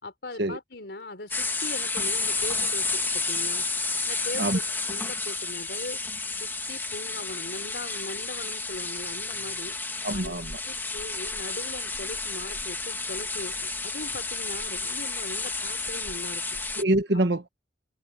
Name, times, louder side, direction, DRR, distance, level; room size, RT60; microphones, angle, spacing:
voice 1, 0.0-3.0 3.3-3.6 4.1-6.0 6.4-9.8 10.1-10.4 10.6-16.6, left 2 dB, 70° left, 4.3 m, -40 dB
sound 1, 1.3-16.8, left 3 dB, 10° left, 2.0 m, -31 dB
voice 2, 10.0-10.6 16.8-17.5, right 1 dB, 70° right, 1.5 m, -25 dB
open air
head